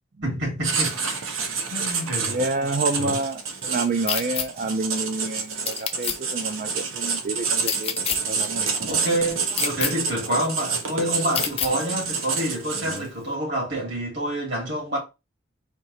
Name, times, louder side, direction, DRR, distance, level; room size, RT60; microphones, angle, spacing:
voice 1, 0.2-1.4 1.7-2.4 3.0-3.2 8.9-15.0, right 1 dB, 60° right, 2.7 m, -27 dB
Writing, 0.6-13.2, right 5 dB, 80° right, 1.0 m, -28 dB
voice 2, 2.3-9.0 12.9-13.0, right 3 dB, 45° right, 0.5 m, -29 dB
sound 1, 4.1-4.5 5.7-6.2 7.6-8.2 9.5-9.9 11.3-11.7, left 8 dB, 30° left, 0.5 m, -26 dB
4.5 x 2.8 x 4.1 m
head